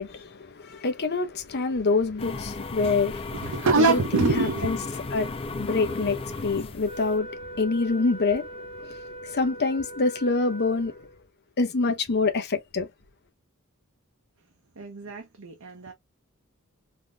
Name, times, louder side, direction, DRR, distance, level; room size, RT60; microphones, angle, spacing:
voice 1, 0.0-4.8 5.1-10.9 11.6-12.9, left 3 dB, 50° left, 0.7 m, -26 dB
sound 1, 2.2-7.2, left 3 dB, 25° left, 0.3 m, -35 dB
voice 2, 3.3-4.9 14.8-15.9, right 3 dB, 65° right, 0.7 m, -25 dB
Wind instrument woodwind instrument, 6.8-11.2, right 1 dB, 25° right, 0.6 m, -41 dB
3.5 x 2.6 x 2.3 m
head